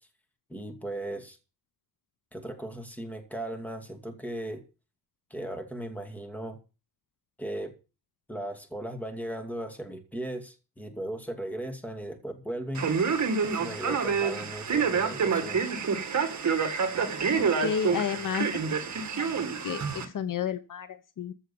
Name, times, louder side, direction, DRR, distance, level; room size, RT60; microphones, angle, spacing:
voice 1, 0.5-1.4 2.3-4.6 5.3-6.6 7.4-7.7 8.3-12.9 13.4-15.6, right 1 dB, 5° left, 4 dB, 2.4 m, -37 dB
Male speech man speaking, 12.7-20.1, right 5 dB, 50° right, 2.1 m, -27 dB
voice 2, 17.3-18.5 19.1-19.3 19.6-21.3, left 8 dB, 60° left, 12 dB, 0.9 m, -32 dB
14.5 x 6.6 x 7.1 m, 0.33 s
wide cardioid pair, 180°, 35 cm